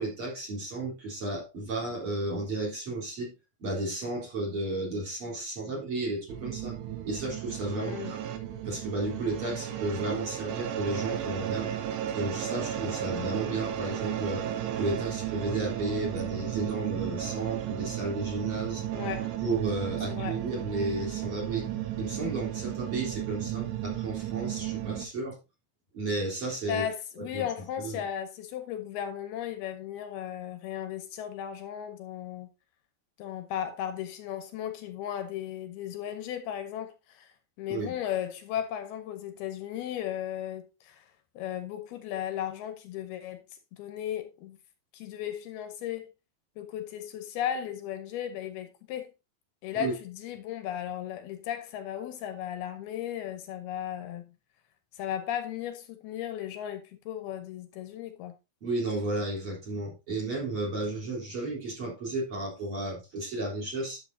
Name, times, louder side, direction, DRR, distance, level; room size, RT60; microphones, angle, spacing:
voice 1, 0.0-3.3 3.6-6.8 7.0-8.2 8.6-11.7 12.1-14.4 14.8-18.8 19.4-21.7 22.0-25.4 25.9-26.8 27.2-27.5 27.8-28.0 37.7-38.0 49.8-49.9 58.6-64.0, right 2 dB, 30° right, 4.2 m, -33 dB
sound 1, 6.3-25.1, right 11 dB, 85° right, 3.1 m, -34 dB
voice 2, 7.8-8.1 18.9-19.3 20.1-20.4 26.7-32.5 33.2-41.1 41.4-43.4 43.7-44.6 44.9-46.1 46.6-49.1 49.6-54.3 54.9-58.3, left 10 dB, 75° left, 2.6 m, -36 dB
11.0 x 7.6 x 2.7 m
omnidirectional pair, 4.9 m